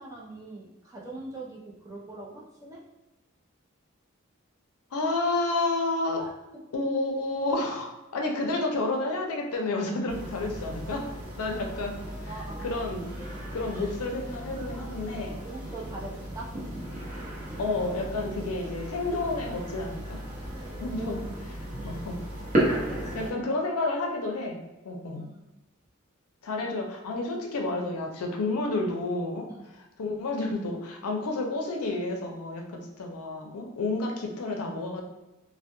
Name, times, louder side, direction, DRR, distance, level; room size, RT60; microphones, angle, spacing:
voice 1, 0.0-2.8 6.2-6.6 12.3-12.9 15.4-16.6 20.8-21.2 22.9-23.3 25.1-25.4 29.5-29.7, right 2 dB, 15° right, -4 dB, 0.4 m, -42 dB
voice 2, 4.9-6.2 6.7-11.1 11.4-11.9 12.6-13.1 13.5-15.4 17.6-20.2 20.8-21.2 21.8-22.2 23.2-25.2 26.4-29.5 30.0-35.0, left 2 dB, 85° left, 2 dB, 0.5 m, -30 dB
sound 1, 10.1-23.3, right 1 dB, 35° right, 0.7 m, -35 dB
2.2 x 2.1 x 2.8 m, 1.0 s
head